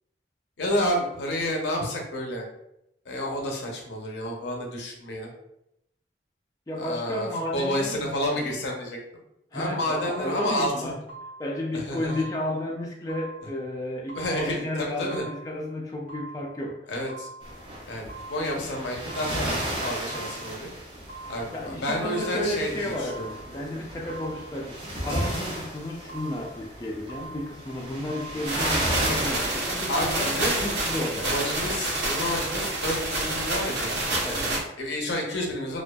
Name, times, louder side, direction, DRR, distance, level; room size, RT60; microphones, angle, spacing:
voice 1, 0.6-2.4 3.1-5.3 6.8-9.0 9.5-10.9 11.7-12.2 14.1-15.3 16.9-17.3 17.9-19.5 19.8-20.7 21.3-23.3 29.9-30.9 31.2-34.0 34.8-35.8, left 1 dB, 85° left, 0 dB, 0.6 m, -30 dB
voice 2, 6.7-8.5 9.5-10.9 11.4-16.7 21.5-30.3 30.6-31.5 34.2-34.6, left 1 dB, 20° left, -2 dB, 0.3 m, -32 dB
sound 1, 10.1-10.7 11.1-11.7 12.1-12.7 13.1-13.7 14.1-14.6 15.1-15.7 16.1-16.7 17.1-17.7 18.1-18.7 19.1-19.7 20.1-20.6 21.1-21.7 22.1-22.7 23.1-23.7 24.1-24.7 25.1-25.6 26.1-26.7 27.1-27.7 28.1-28.7 29.1-29.2, right 2 dB, 50° right, 1.1 m, -44 dB
sound 2, 17.4-29.8, right 1 dB, 30° right, 0.6 m, -34 dB
sound 3, 28.4-34.6, right 2 dB, 75° right, 0.6 m, -28 dB
2.5 x 2.3 x 2.2 m, 0.83 s
head